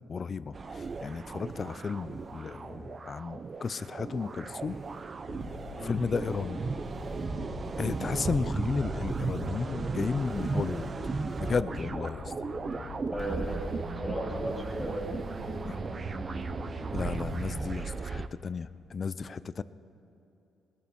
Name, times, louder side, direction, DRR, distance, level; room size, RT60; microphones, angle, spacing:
voice 1, 0.1-4.8 5.8-6.6 7.8-10.9 11.4-12.3 15.6-15.8 16.9-19.6, left 5 dB, 40° left, 16 dB, 0.5 m, -33 dB
sound 1, 0.5-18.3, right 4 dB, 40° right, 0.6 m, -36 dB
sound 2, 5.3-17.3, left 6 dB, 70° left, 0.8 m, -45 dB
voice 2, 13.1-13.7 14.0-15.5, equal, 15° left, -2 dB, 2.7 m, -36 dB
18.5 x 13.5 x 5.5 m, 3.0 s
cardioid pair, 90°, 0 cm